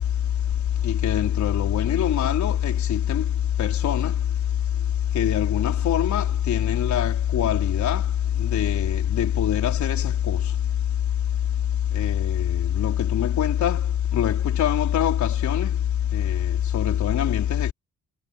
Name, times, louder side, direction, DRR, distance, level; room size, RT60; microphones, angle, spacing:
voice 1, 0.8-3.3 3.6-4.1 5.1-8.0 8.4-10.4 11.9-13.8 14.1-15.7 16.1-17.7, left 10 dB, 70° left, 4.7 m, -23 dB
cardioid pair, 90°, 30 cm